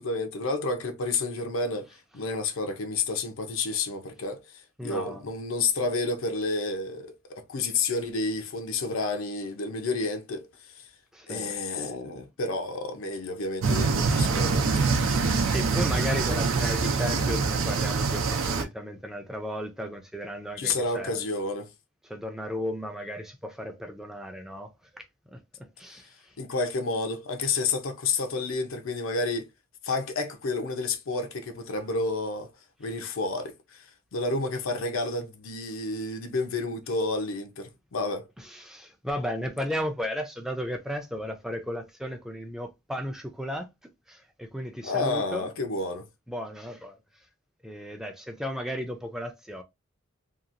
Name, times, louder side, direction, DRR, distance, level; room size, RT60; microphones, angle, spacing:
voice 1, 0.0-1.9 2.1-10.5 11.3-14.7 20.6-21.7 26.4-29.5 29.8-32.5 32.8-38.3 44.8-46.1, left 3 dB, 85° left, 0.6 m, -30 dB
voice 2, 4.8-5.3 11.1-11.6 15.4-21.2 22.0-26.3 38.4-43.7 44.1-45.5 46.3-47.3 47.6-49.6, equal, ahead, 0.4 m, -35 dB
sound 1, 13.6-18.6, right 4 dB, 80° right, 0.6 m, -25 dB
2.9 x 2.3 x 2.5 m
head